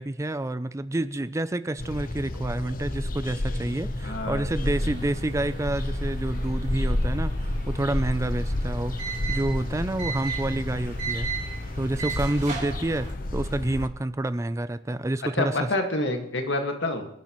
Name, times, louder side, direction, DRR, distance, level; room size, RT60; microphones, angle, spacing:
voice 1, 0.0-7.3 7.7-9.0 9.3-11.3 11.8-15.7, right 1 dB, 15° right, 14 dB, 0.4 m, -28 dB
sound 1, 1.8-13.9, left 1 dB, 50° left, 0.9 m, -30 dB
voice 2, 4.0-4.5 4.8-4.9 15.4-17.1, left 2 dB, 85° left, 4 dB, 1.8 m, -27 dB
sound 2, 4.6-13.1, right 5 dB, 45° right, 3.7 m, -38 dB
27.0 x 11.0 x 3.1 m, 0.80 s
head